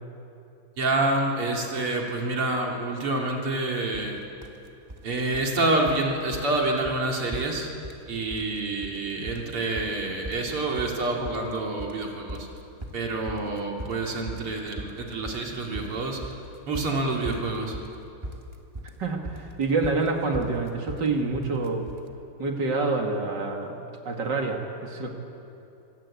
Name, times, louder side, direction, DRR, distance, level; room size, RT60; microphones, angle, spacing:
voice 1, 0.8-4.2 5.0-7.7 8.1-12.5 12.9-16.3 16.7-17.8, right 2 dB, 85° right, 0 dB, 3.7 m, -27 dB
sound 1, 3.9-4.1 4.4-5.0 5.3-6.1 6.3-6.6 6.8-7.0 7.3-8.1 8.3-9.0 9.3-22.1, equal, 15° right, 1.2 m, -39 dB
voice 2, 19.0-21.9 22.4-23.8 24.0-25.1, right 3 dB, 55° right, 2 dB, 2.7 m, -27 dB
25.0 x 18.0 x 8.6 m, 2.8 s
omnidirectional pair, 2.4 m